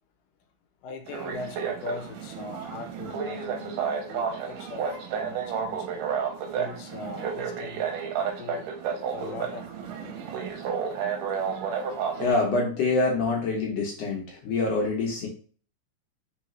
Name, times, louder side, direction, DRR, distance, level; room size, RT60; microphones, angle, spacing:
voice 1, 0.8-5.9 6.5-7.9 8.4-8.7 9.1-10.2, left 4 dB, 80° left, 6 dB, 2.2 m, -40 dB
sound 1, 1.1-12.3, right 7 dB, 85° right, 2.3 m, -31 dB
voice 2, 12.2-15.3, left 3 dB, 65° left, -1 dB, 1.7 m, -25 dB
4.9 x 3.5 x 3.1 m, 0.42 s
omnidirectional pair, 3.8 m